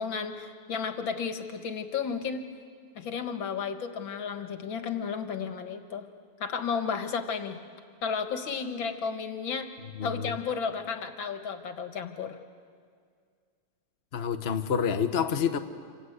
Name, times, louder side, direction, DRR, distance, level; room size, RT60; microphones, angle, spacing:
voice 1, 0.0-2.5 3.0-6.1 6.4-7.6 8.0-9.7 10.0-12.4, left 6 dB, 65° left, 7 dB, 2.2 m, -33 dB
voice 2, 10.0-10.3 14.1-15.6, left 7 dB, 40° left, 7 dB, 1.0 m, -28 dB
27.5 x 27.0 x 8.1 m, 2.1 s
omnidirectional pair, 2.4 m